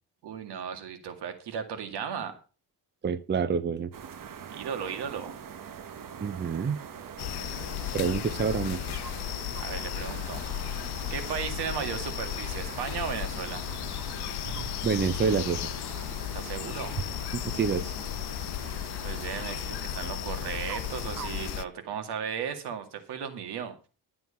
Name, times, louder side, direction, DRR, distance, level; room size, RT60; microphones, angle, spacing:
voice 1, 0.2-2.4 4.5-5.3 9.6-10.4 11.1-13.6 16.3-16.9 19.0-23.7, right 7 dB, 85° right, 7 dB, 2.2 m, -35 dB
voice 2, 3.0-3.9 6.2-6.8 7.9-9.0 14.8-15.7 17.3-17.9, right 6 dB, 30° right, 14 dB, 0.7 m, -28 dB
sound 1, 3.9-21.6, right 8 dB, 55° right, 1.3 m, -42 dB
sound 2, 7.2-21.6, left 13 dB, 80° left, 0.7 m, -35 dB
12.0 x 7.9 x 5.6 m, 0.35 s
cardioid pair, 130°, 39 cm